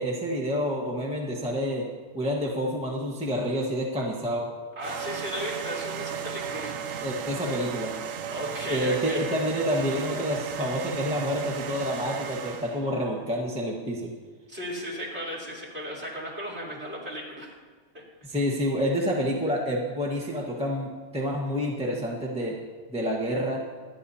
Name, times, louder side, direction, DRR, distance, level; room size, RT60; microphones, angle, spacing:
voice 1, 0.0-1.9 2.1-4.5 7.0-7.9 8.7-14.1 18.2-22.6 22.9-23.6, equal, 5° right, -3 dB, 1.3 m, -28 dB
voice 2, 4.8-6.8 8.3-9.2 14.5-17.5 17.9-18.0, equal, 40° right, -6 dB, 4.0 m, -35 dB
sound 1, 4.8-12.9, right 8 dB, 65° right, 1.0 m, -35 dB
26.0 x 10.0 x 2.8 m, 1.5 s
omnidirectional pair, 1.6 m